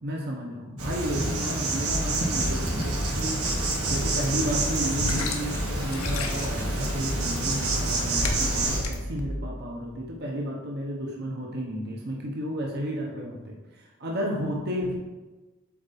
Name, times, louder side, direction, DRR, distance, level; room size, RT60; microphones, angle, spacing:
voice 1, 0.0-3.4 3.8-15.0, equal, 50° right, -1 dB, 0.9 m, -32 dB
Insect, 0.8-8.8, right 2 dB, 85° right, 1.3 m, -28 dB
sound 1, 1.9-10.1, equal, 10° left, 0.6 m, -34 dB
sound 2, 3.5-8.9, left 3 dB, 75° left, 0.8 m, -35 dB
7.3 x 4.0 x 4.2 m, 1.2 s
head